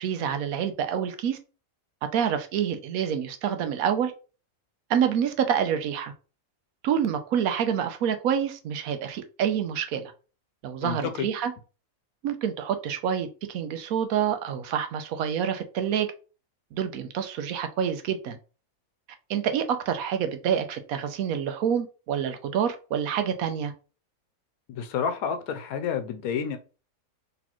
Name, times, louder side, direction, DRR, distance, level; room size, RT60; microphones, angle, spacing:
voice 1, 0.0-1.4 2.1-4.1 4.9-6.1 6.8-10.1 10.6-11.5 12.2-16.1 16.7-18.4 19.3-23.7, right 8 dB, 85° right, 1.1 m, -27 dB
voice 2, 10.8-11.3 24.7-26.6, left 7 dB, 90° left, 1.1 m, -29 dB
4.1 x 3.3 x 3.0 m
omnidirectional pair, 1.5 m